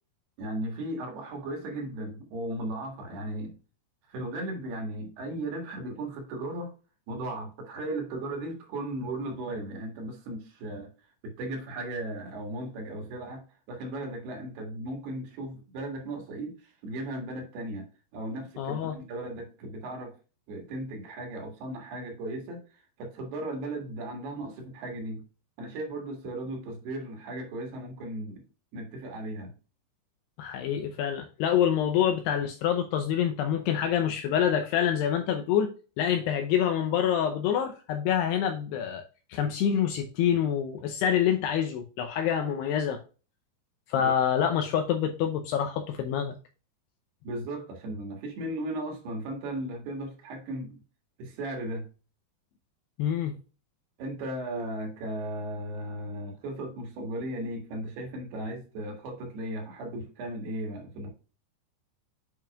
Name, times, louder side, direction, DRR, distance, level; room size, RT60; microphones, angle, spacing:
voice 1, 0.4-3.5 4.1-6.7 7.1-10.9 11.2-17.9 18.1-20.1 20.5-22.6 23.0-25.2 25.6-28.4 28.7-29.5 44.0-44.1 47.2-50.8 51.2-51.9 54.0-61.1, right 1 dB, 65° right, 3.4 m, -36 dB
voice 2, 18.6-19.0 30.4-35.7 36.0-39.0 39.3-43.0 43.9-46.3 53.0-53.3, left 9 dB, 80° left, 2.4 m, -26 dB
8.7 x 5.8 x 2.3 m
omnidirectional pair, 5.4 m